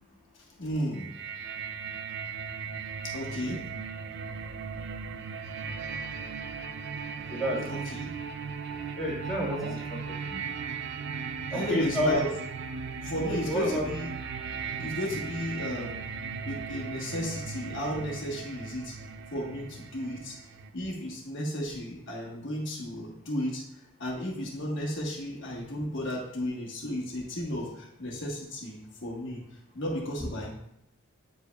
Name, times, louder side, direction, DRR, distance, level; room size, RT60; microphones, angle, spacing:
voice 1, 0.6-1.1 3.1-3.6 7.7-8.1 9.6-9.8 11.5-12.3 13.0-14.1 14.8-16.0 16.4-18.9 19.3-20.4 20.7-23.6 24.0-29.4 29.7-30.5, equal, 55° left, -2 dB, 1.2 m, -34 dB
sound 1, 0.9-20.7, right 5 dB, 50° right, 0.4 m, -37 dB
voice 2, 7.3-7.8 9.0-10.4 11.5-12.3 13.3-13.9, equal, ahead, -8 dB, 1.7 m, -30 dB
8.7 x 5.0 x 2.3 m, 0.79 s
head